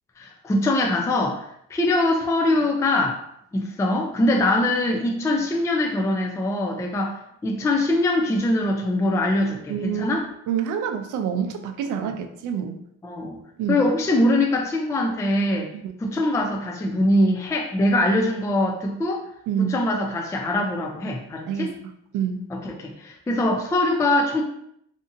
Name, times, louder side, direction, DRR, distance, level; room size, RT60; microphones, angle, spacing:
voice 1, 0.2-3.2 3.5-10.2 12.0-12.1 13.0-13.4 13.7-15.7 16.0-19.2 19.6-21.7 22.5-24.4, left 1 dB, 10° left, 2 dB, 0.3 m, -23 dB
voice 2, 9.7-12.8 13.6-13.8 15.7-15.9 19.5-19.8 21.5-21.7 22.1-22.4, right 8 dB, 80° right, 5 dB, 0.5 m, -27 dB
2.7 x 2.5 x 2.5 m, 0.74 s
cardioid pair, 90°, 30 cm